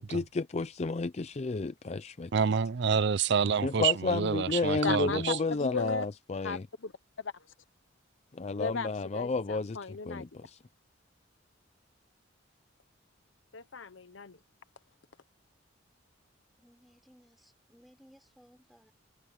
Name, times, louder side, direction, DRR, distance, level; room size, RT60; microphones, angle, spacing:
voice 1, 0.0-2.3 3.6-6.6 8.3-9.8 10.1-10.6, left 3 dB, 35° left, 0.5 m, -31 dB
voice 2, 2.3-5.4, right 6 dB, 60° right, 0.5 m, -28 dB
voice 3, 4.8-6.1 6.4-6.9 7.2-7.5 8.6-10.3 13.5-14.4, left 5 dB, 75° left, 1.0 m, -37 dB
voice 4, 16.6-18.9, equal, ahead, 3.9 m, -60 dB
head